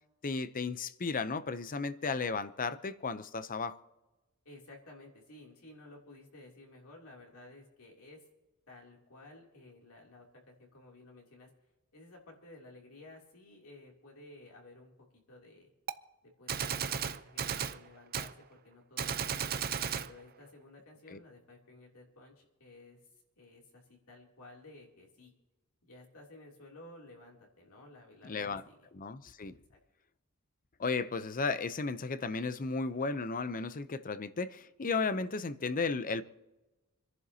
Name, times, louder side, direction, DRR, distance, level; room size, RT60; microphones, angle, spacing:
voice 1, 0.2-3.8 21.1-21.2 28.2-28.6 28.9-29.6 30.8-36.2, left 4 dB, 40° left, 0.6 m, -34 dB
voice 2, 4.4-8.2 8.7-11.5 11.9-15.7 16.2-19.5 19.9-23.0 23.4-25.3 25.8-28.9 29.7-29.8, left 2 dB, 70° left, 3.0 m, -54 dB
Gunshot gunfire, 15.9-16.0 16.5-17.8 18.1-18.3 19.0-20.1, right 7 dB, 45° right, 0.6 m, -34 dB
28.5 x 11.0 x 2.8 m
head